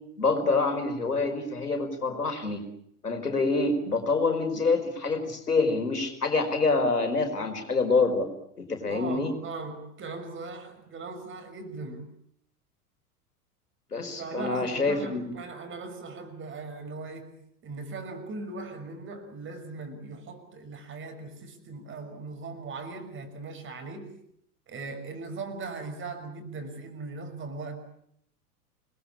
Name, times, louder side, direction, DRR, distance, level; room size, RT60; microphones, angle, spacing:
voice 1, 0.2-2.6 3.0-8.3 8.6-9.3 13.9-15.2, left 3 dB, 80° left, 5 dB, 5.1 m, -26 dB
voice 2, 8.9-12.1 14.2-24.1 24.7-27.8, right 3 dB, 25° right, 7 dB, 6.1 m, -39 dB
28.5 x 21.0 x 8.8 m, 0.71 s
figure-of-eight pair, 90°, 46 cm